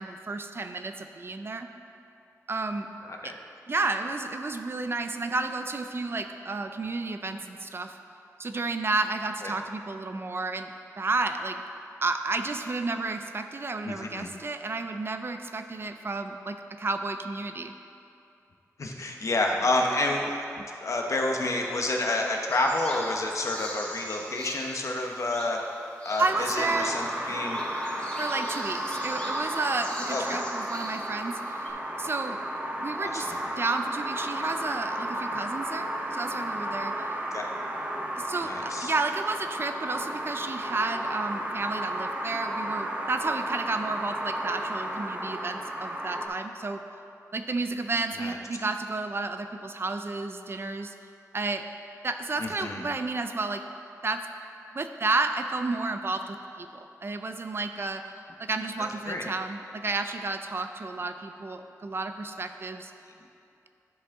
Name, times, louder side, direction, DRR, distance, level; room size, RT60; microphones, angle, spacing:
voice 1, 0.0-1.7 2.5-2.9 3.2-3.3 3.7-8.0 8.4-11.6 12.0-17.7 26.2-27.0 28.2-31.7 32.0-32.4 32.8-37.1 38.2-46.8 47.3-50.9 51.3-51.6 52.0-53.6 54.0-54.2 54.7-58.1 58.4-62.9, right 3 dB, 40° right, 7 dB, 0.4 m, -31 dB
voice 2, 13.8-14.3 18.8-20.4 20.8-25.6 26.0-27.6 30.1-30.4 33.0-33.4 37.3-37.5 38.4-38.9 48.1-48.4 52.4-52.8 59.1-59.3, left 2 dB, 60° left, 1 dB, 0.9 m, -29 dB
sound 1, 22.5-31.7, left 1 dB, 20° left, 1.2 m, -43 dB
sound 2, 26.3-46.3, right 1 dB, 25° right, 0.8 m, -33 dB
11.0 x 5.2 x 3.6 m, 2.7 s
wide cardioid pair, 105°, 6 cm